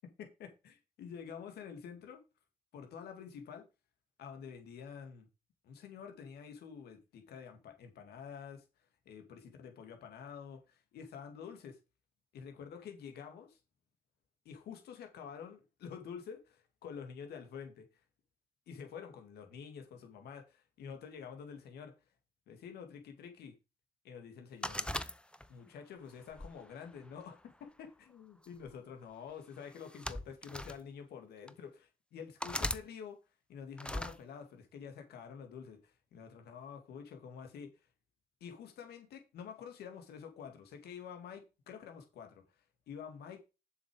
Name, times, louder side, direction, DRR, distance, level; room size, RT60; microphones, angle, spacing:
voice 1, 0.0-2.2 2.7-3.7 4.2-5.3 5.6-8.6 9.1-11.8 12.3-13.6 14.5-17.9 18.7-21.9 22.5-23.5 24.0-24.9 25.5-33.2 33.5-37.7 38.4-42.4 42.9-43.4, left 7 dB, 85° left, 5 dB, 2.1 m, -48 dB
sound 1, 24.6-25.7 26.3-27.5 28.4-28.7 29.7-30.8 31.5-31.6 32.4-32.8 33.8-34.2, left 1 dB, 5° left, 0.9 m, -39 dB
7.2 x 6.5 x 4.9 m, 0.28 s
supercardioid pair, 45°, 16 cm